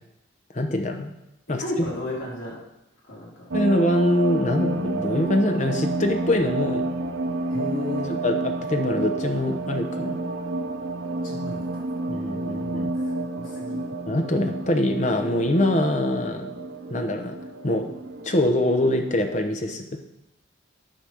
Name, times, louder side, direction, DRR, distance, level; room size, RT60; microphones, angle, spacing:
voice 1, 0.5-1.1 1.5-1.6 3.5-6.9 8.1-10.2 12.1-12.9 14.1-16.5 16.9-17.4 17.6-17.9 18.2-20.0, left 1 dB, 40° left, 5 dB, 0.9 m, -24 dB
voice 2, 1.6-2.6 3.1-3.4 7.5-8.1 11.2-11.9 12.9-13.8, left 2 dB, 85° left, -6 dB, 3.5 m, -33 dB
sound 1, 3.5-19.4, right 2 dB, 80° right, 0.7 m, -30 dB
10.5 x 4.2 x 6.3 m, 0.90 s
head